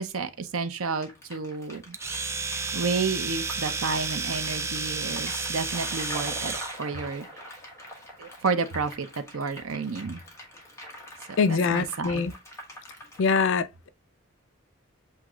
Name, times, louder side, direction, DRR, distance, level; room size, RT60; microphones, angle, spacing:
voice 1, 0.0-2.0 2.7-7.3 8.2-10.2 11.4-12.3, right 4 dB, 80° right, 0.7 m, -31 dB
sound 1, 1.0-13.3, equal, 15° left, 1.2 m, -43 dB
Domestic sounds home sounds, 1.9-6.8, right 4 dB, 15° right, 0.3 m, -31 dB
voice 2, 11.4-12.3 13.2-13.9, left 5 dB, 60° left, 0.4 m, -24 dB
7.7 x 2.9 x 2.4 m
head